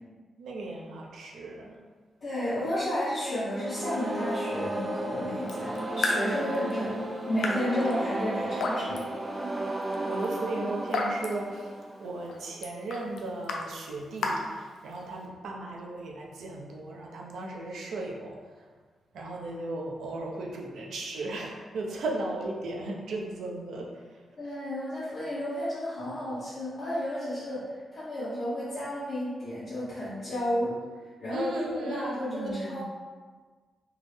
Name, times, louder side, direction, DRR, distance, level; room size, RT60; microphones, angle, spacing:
voice 1, 0.4-1.8 6.3-6.6 10.0-11.7 12.0-18.7 19.1-24.2 31.3-32.8, right 2 dB, 80° right, -1 dB, 0.5 m, -36 dB
voice 2, 2.2-6.9 7.3-9.0 24.4-30.7 31.2-31.5 31.8-32.8, equal, 50° left, -13 dB, 0.9 m, -32 dB
sound 1, 3.5-12.4, right 1 dB, 20° right, 0.4 m, -34 dB
Raindrop / Drip, 5.4-15.3, left 3 dB, 90° left, 0.4 m, -36 dB
3.4 x 2.0 x 3.1 m, 1.4 s
wide cardioid pair, 165°, 0 cm